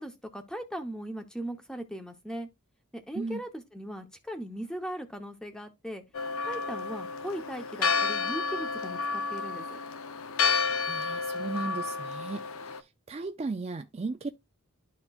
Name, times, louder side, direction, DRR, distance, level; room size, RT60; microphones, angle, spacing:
voice 1, 0.0-2.5 2.9-6.0 6.4-9.8, equal, 5° left, 0.8 m, -39 dB
Church bell, 6.1-12.8, left 5 dB, 65° left, 0.6 m, -31 dB
voice 2, 10.8-12.4 12.7-14.3, right 3 dB, 30° right, 0.4 m, -36 dB
12.0 x 4.3 x 2.4 m
head